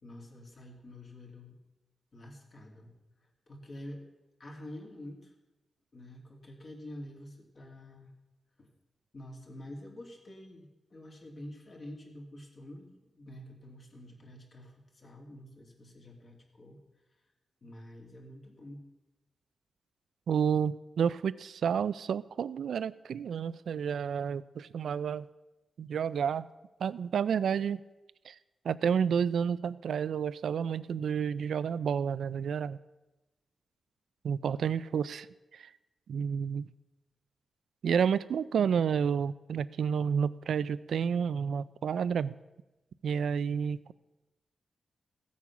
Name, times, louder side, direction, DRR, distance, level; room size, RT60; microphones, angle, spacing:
voice 1, 0.0-1.6 2.1-2.9 3.5-4.1 4.4-5.3 5.9-8.1 8.6-8.7 9.1-16.8 17.6-18.9, left 1 dB, 40° left, 1 dB, 2.6 m, -48 dB
voice 2, 20.3-25.3 25.8-26.5 26.8-27.8 28.3-28.4 28.6-32.8 34.2-35.3 35.5-35.7 36.1-36.6 37.8-42.3 43.0-43.9, right 7 dB, 90° right, 17 dB, 0.3 m, -30 dB
15.5 x 8.4 x 6.0 m, 1.0 s
wide cardioid pair, 140°, 0 cm